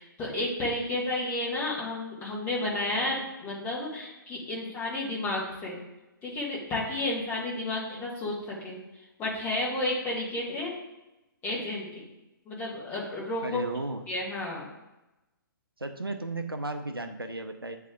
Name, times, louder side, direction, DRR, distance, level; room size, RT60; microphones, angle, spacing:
voice 1, 0.0-5.8 6.2-8.8 9.2-10.7 11.4-12.0 12.4-13.6 14.1-14.7, left 2 dB, 20° left, -4 dB, 1.7 m, -32 dB
voice 2, 13.4-14.0 15.8-17.8, right 2 dB, 90° right, 7 dB, 0.7 m, -34 dB
8.6 x 3.3 x 3.7 m, 0.99 s
figure-of-eight pair, 130°, 12 cm